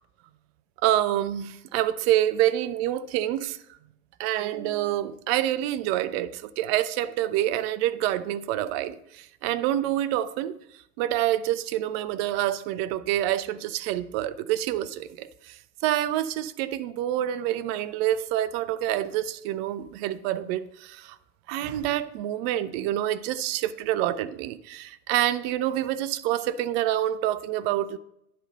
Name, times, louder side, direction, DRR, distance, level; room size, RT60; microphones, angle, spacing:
voice 1, 0.8-3.6 4.2-10.5 11.0-21.2 21.5-28.0, right 13 dB, 45° right, 0.5 m, -27 dB
9.9 x 4.2 x 5.3 m
figure-of-eight pair, 80°, 46 cm